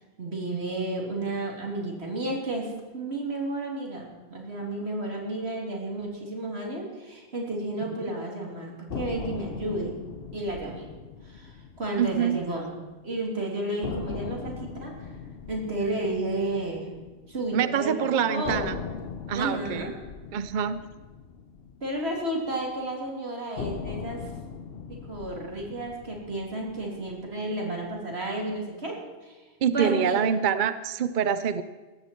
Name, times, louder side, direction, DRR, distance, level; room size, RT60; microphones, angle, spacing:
voice 1, 0.2-10.0 10.3-10.9 11.2-12.7 13.0-15.1 15.5-16.9 17.3-18.8 19.3-19.9 21.8-24.3 24.9-29.0 29.2-29.4 29.7-30.2, right 1 dB, 90° right, -1 dB, 3.4 m, -32 dB
sound 1, 8.9-13.0 13.3-13.4 13.8-17.9 18.4-22.8 23.6-27.9, left 5 dB, 70° left, 1.0 m, -40 dB
voice 2, 12.0-12.4 17.5-18.8 19.3-19.9 20.3-20.8 29.6-31.6, right 8 dB, 55° right, 13 dB, 0.7 m, -25 dB
17.5 x 14.5 x 4.5 m, 1.2 s
omnidirectional pair, 1.1 m